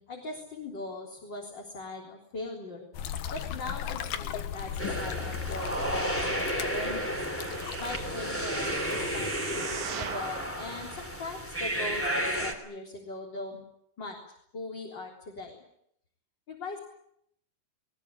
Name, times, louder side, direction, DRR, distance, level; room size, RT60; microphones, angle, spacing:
voice 1, 0.0-2.9 3.3-7.2 7.8-13.6 14.0-14.2 14.5-15.6 16.5-16.8, left 2 dB, 30° left, -1 dB, 4.2 m, -40 dB
sound 1, 2.9-9.3, left 9 dB, 70° left, 2.9 m, -37 dB
sound 2, 4.8-12.5, equal, 5° left, 2.7 m, -32 dB
sound 3, 6.8-10.4 11.0-11.1, right 8 dB, 60° right, 3.1 m, -40 dB
22.0 x 20.0 x 10.0 m, 0.72 s
omnidirectional pair, 4.2 m